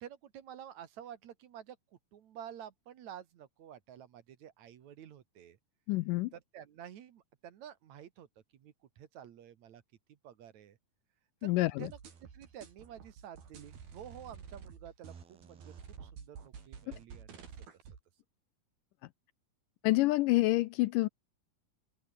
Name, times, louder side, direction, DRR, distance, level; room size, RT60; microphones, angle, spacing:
voice 1, 0.0-1.8 2.1-5.6 6.3-8.3 8.5-9.8 10.1-10.8 11.4-11.5 11.8-17.5, right 10 dB, 60° right, 2.5 m, -50 dB
voice 2, 5.9-6.3 11.4-11.9 16.9-17.0 19.8-21.1, left 20 dB, 80° left, 2.0 m, -28 dB
sound 1, 11.9-18.0, right 7 dB, 90° right, 5.8 m, -50 dB
open air
omnidirectional pair, 4.2 m